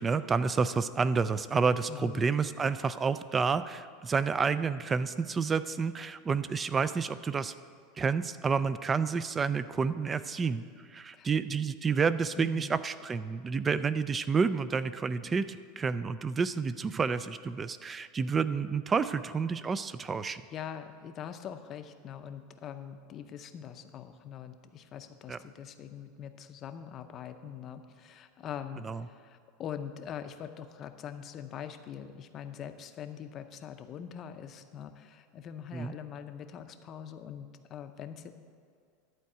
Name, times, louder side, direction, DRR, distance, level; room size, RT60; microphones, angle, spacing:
voice 1, 0.0-7.5 8.0-10.6 10.9-20.4 25.3-25.4 28.8-29.0 35.7-35.9, right 5 dB, 15° right, 15 dB, 0.3 m, -29 dB
voice 2, 1.9-2.3 11.1-11.3 12.4-12.7 20.2-38.4, left 8 dB, 30° left, 8 dB, 0.6 m, -43 dB
11.5 x 4.6 x 7.8 m, 2.2 s
supercardioid pair, 150°, 0 cm